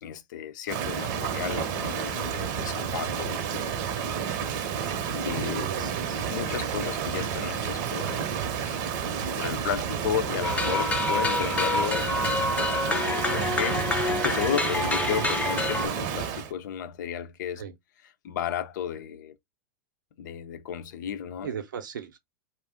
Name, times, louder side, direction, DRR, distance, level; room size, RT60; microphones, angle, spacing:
voice 1, 0.0-3.8 5.1-5.7 6.3-8.3 9.3-12.1 12.9-17.6 18.2-19.3 20.2-21.5, left 9 dB, 75° left, 0.5 m, -33 dB
Rain, 0.7-16.5, right 7 dB, 55° right, 0.7 m, -30 dB
voice 2, 5.4-6.3 17.6-17.7 21.4-22.2, right 8 dB, 90° right, 0.7 m, -37 dB
sound 1, 10.4-15.9, left 2 dB, 15° left, 0.5 m, -27 dB
2.5 x 2.0 x 3.5 m
hypercardioid pair, 110°, 10 cm